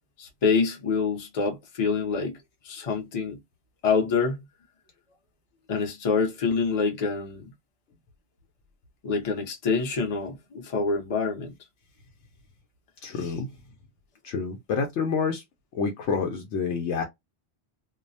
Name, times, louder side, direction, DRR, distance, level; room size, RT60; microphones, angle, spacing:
voice 1, 0.2-3.4 3.8-4.4 5.7-7.5 9.0-11.5 13.2-13.3, left 4 dB, 40° left, 0.6 m, -26 dB
voice 2, 13.0-13.5 14.2-15.4 15.7-17.1, left 5 dB, 85° left, 0.9 m, -28 dB
2.3 x 2.0 x 2.6 m
omnidirectional pair, 1.1 m